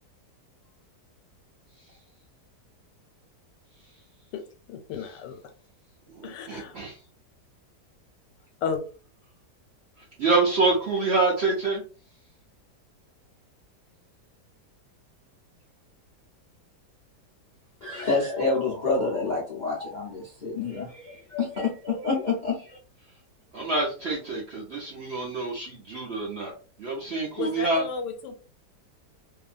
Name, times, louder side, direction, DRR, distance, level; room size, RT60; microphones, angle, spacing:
voice 1, 4.7-5.4 6.2-6.8 8.6-8.8 27.4-28.4, left 6 dB, 85° left, 7 dB, 1.2 m, -33 dB
voice 2, 6.2-7.0 10.2-11.8 23.5-26.5 26.8-27.8, right 3 dB, 65° right, -4 dB, 0.6 m, -26 dB
voice 3, 17.8-22.8, left 4 dB, 65° left, -5 dB, 0.4 m, -28 dB
2.7 x 2.5 x 2.4 m, 0.38 s
omnidirectional pair, 1.8 m